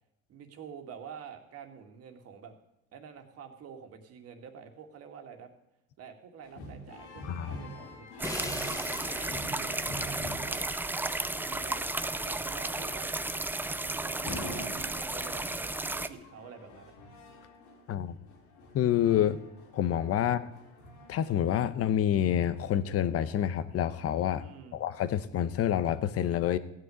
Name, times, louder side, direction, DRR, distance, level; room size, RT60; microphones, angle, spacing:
voice 1, 0.3-2.6 2.9-5.5 6.0-10.7 11.2-13.2 13.8-16.9 20.2-20.4 24.4-24.8, right 7 dB, 55° right, 5 dB, 2.2 m, -48 dB
sound 1, 6.4-21.6, left 1 dB, 85° left, 3.5 m, -46 dB
Crash cymbal, 8.2-14.2, left 2 dB, 10° left, 1.2 m, -45 dB
sound 2, 8.2-16.1, right 2 dB, 5° right, 0.5 m, -33 dB
voice 2, 18.7-19.4 19.7-20.4 21.1-24.4 24.7-26.6, left 10 dB, 50° left, 14 dB, 1.0 m, -27 dB
15.5 x 6.4 x 9.3 m, 0.87 s
cardioid pair, 110°, 30 cm